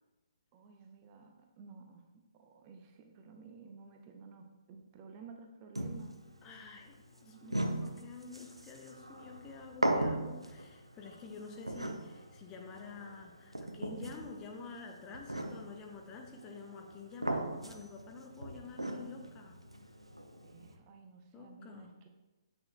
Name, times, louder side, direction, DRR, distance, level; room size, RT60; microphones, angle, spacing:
voice 1, 0.5-2.0 2.3-6.7 7.1-7.7 20.4-22.1, right 5 dB, 25° right, 4 dB, 0.6 m, -54 dB
sound 1, 5.8-20.8, right 1 dB, 85° right, 0.6 m, -39 dB
voice 2, 6.4-19.6 21.3-21.9, left 4 dB, 20° left, 2 dB, 0.6 m, -49 dB
8.7 x 6.1 x 2.2 m, 1.1 s
figure-of-eight pair, 130°, 3 cm